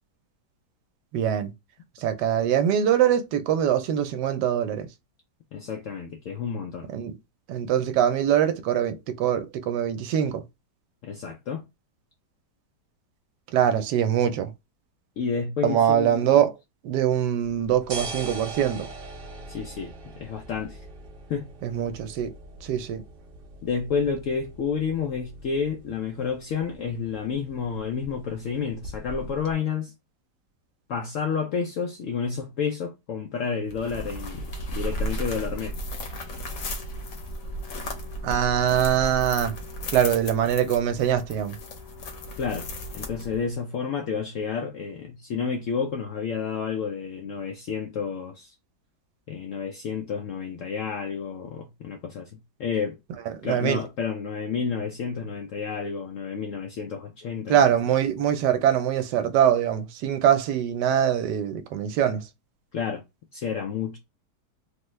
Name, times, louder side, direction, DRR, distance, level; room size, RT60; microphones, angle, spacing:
voice 1, 1.1-1.5 2.0-4.9 6.9-7.2 7.5-10.4 13.5-14.5 15.6-16.6 16.8-18.9 21.6-22.3 22.6-23.0 38.2-39.5 39.9-41.6 53.4-53.8 57.5-62.2, right 9 dB, 80° right, 1.1 m, -23 dB
voice 2, 5.5-6.9 11.0-11.7 15.2-16.5 19.5-20.9 21.3-21.5 23.6-29.9 30.9-34.5 34.7-35.7 42.4-42.7 42.9-48.5 49.3-53.0 53.4-57.6 62.7-63.0 63.3-64.0, left 6 dB, 80° left, 0.7 m, -30 dB
sound 1, 17.4-29.5, right 2 dB, 55° right, 0.6 m, -42 dB
sound 2, 33.7-43.5, equal, 60° left, 1.1 m, -34 dB
3.3 x 2.2 x 3.0 m
omnidirectional pair, 1.9 m